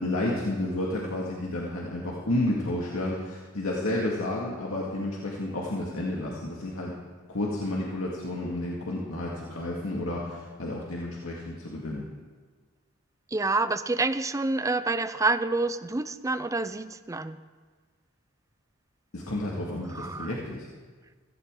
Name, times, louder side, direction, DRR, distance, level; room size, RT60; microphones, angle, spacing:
voice 1, 0.0-6.9 7.3-12.0 19.1-20.7, left 1 dB, 80° left, -3 dB, 2.1 m, -31 dB
voice 2, 13.3-17.4 19.9-20.3, right 3 dB, 15° right, 12 dB, 0.4 m, -28 dB
16.5 x 15.0 x 3.8 m, 1.5 s
head